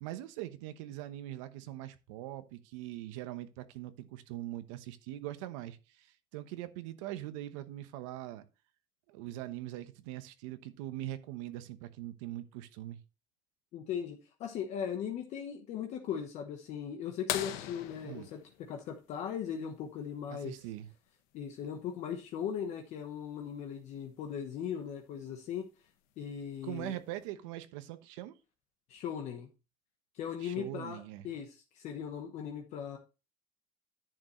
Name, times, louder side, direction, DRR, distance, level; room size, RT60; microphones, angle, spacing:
voice 1, 0.0-8.4 9.1-13.0 18.0-18.3 20.3-20.9 26.6-28.3 30.4-31.3, right 14 dB, 85° right, 1.0 m, -42 dB
voice 2, 13.7-20.5 21.3-25.7 26.2-27.0 28.9-29.5 30.1-33.0, left 8 dB, 45° left, 1.0 m, -38 dB
sound 1, 17.3-19.7 21.7-21.8 24.0-24.1 25.8-26.1 26.9-27.0, left 12 dB, 65° left, 1.0 m, -39 dB
10.5 x 6.6 x 3.1 m
cardioid pair, 150°, 16 cm